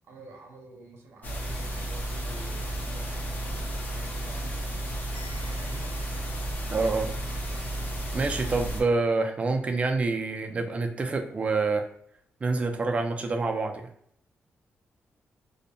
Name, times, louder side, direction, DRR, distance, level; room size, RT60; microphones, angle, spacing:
voice 1, 0.0-4.6 5.3-6.0 8.1-8.5, right 3 dB, 75° right, 1 dB, 0.6 m, -50 dB
sound 1, 1.2-8.8, right 1 dB, 40° left, 0.5 m, -33 dB
Bell, 5.1-7.2, left 3 dB, 60° left, 1.0 m, -54 dB
voice 2, 6.7-7.1 8.1-11.9 12.4-13.8, right 3 dB, 30° right, 4 dB, 0.3 m, -27 dB
2.6 x 2.1 x 2.6 m, 0.68 s
wide cardioid pair, 140°, 5 cm